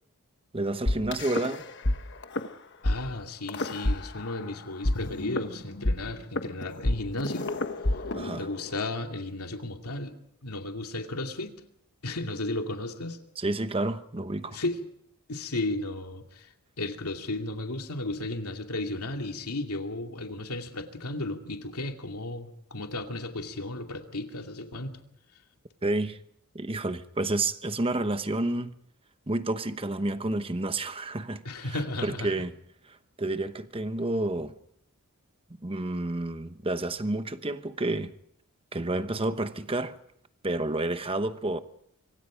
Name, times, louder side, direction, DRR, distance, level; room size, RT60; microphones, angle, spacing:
voice 1, 0.5-1.6 8.1-8.5 13.4-14.6 25.8-26.2 26.5-28.8 29.3-31.4 31.7-32.5 33.2-34.5 35.5-38.1 38.7-40.0 40.4-41.6, right 2 dB, 25° right, 1.0 m, -30 dB
sound 1, 0.9-2.0 2.2-2.5 2.8-3.0 3.5-4.5 4.8-8.9, left 1 dB, 55° left, 1.3 m, -28 dB
voice 2, 2.8-7.5 8.4-10.1 10.4-11.5 12.0-13.2 14.5-14.8 15.3-16.5 16.8-25.0 31.4-32.4, left 2 dB, 90° left, 2.5 m, -34 dB
25.5 x 24.5 x 5.1 m
head